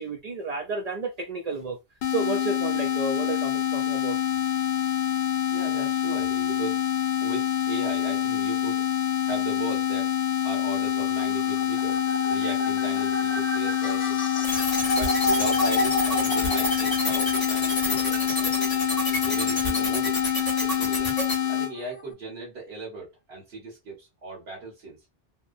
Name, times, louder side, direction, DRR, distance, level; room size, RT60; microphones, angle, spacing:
voice 1, 0.0-1.8 2.1-4.2, right 3 dB, 50° right, 0.5 m, -31 dB
sound 1, 2.0-21.7, left 10 dB, 70° left, 0.8 m, -26 dB
voice 2, 5.5-6.8 7.2-8.8 9.3-10.1 10.4-12.0 12.3-14.2 14.9-18.5 19.2-20.3 20.6-21.1 21.5-25.0, right 3 dB, 75° right, 1.3 m, -38 dB
sound 2, 10.9-22.1, left 2 dB, 45° left, 0.4 m, -32 dB
sound 3, 14.4-21.4, left 1 dB, 20° left, 0.9 m, -29 dB
2.8 x 2.1 x 2.4 m
omnidirectional pair, 1.0 m